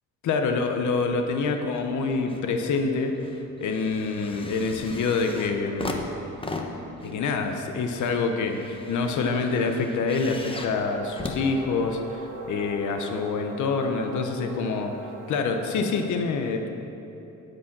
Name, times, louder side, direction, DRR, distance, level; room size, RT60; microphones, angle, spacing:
voice 1, 0.3-3.1 3.6-6.0 7.0-14.9 15.3-16.7, left 4 dB, 75° left, 5 dB, 0.9 m, -26 dB
sound 1, 1.7-2.5 2.8-12.2 13.0-13.1, left 2 dB, 15° left, 1.1 m, -38 dB
sound 2, 10.6-16.1, right 4 dB, 90° right, 1.1 m, -42 dB
15.5 x 5.2 x 6.0 m, 2.9 s
cardioid pair, 90°, 30 cm